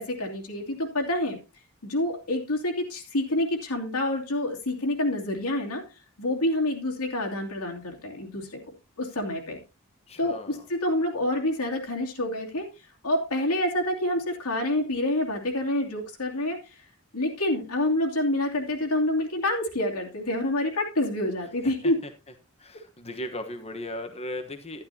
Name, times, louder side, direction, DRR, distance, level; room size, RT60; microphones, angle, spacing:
voice 1, 0.0-1.4 1.8-5.8 6.2-8.6 9.0-9.6 10.2-12.7 13.0-16.6 17.1-22.0, left 1 dB, 85° left, 0 dB, 2.8 m, -27 dB
voice 2, 10.1-10.6 21.6-22.1 22.6-24.8, left 1 dB, 30° left, 6 dB, 1.1 m, -37 dB
11.5 x 11.5 x 2.8 m, 0.29 s
head